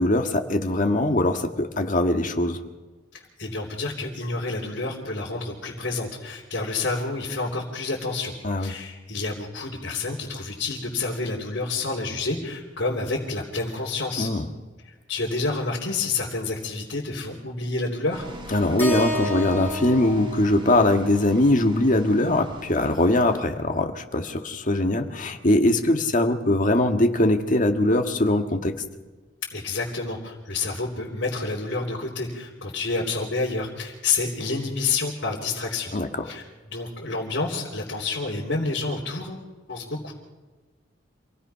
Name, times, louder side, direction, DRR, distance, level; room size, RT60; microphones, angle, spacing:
voice 1, 0.0-2.6 8.4-8.7 14.2-14.5 18.5-28.8 35.9-36.1, left 1 dB, 45° left, 5 dB, 1.7 m, -21 dB
voice 2, 3.1-8.3 8.6-14.3 14.8-18.3 29.5-35.9 36.2-36.4 36.7-40.1, left 3 dB, 65° left, -4 dB, 3.4 m, -29 dB
sound 1, 18.1-23.4, equal, 25° right, 2.2 m, -42 dB
Keyboard (musical), 18.8-23.0, equal, 10° left, 4.5 m, -33 dB
27.5 x 18.0 x 5.8 m, 1.3 s
head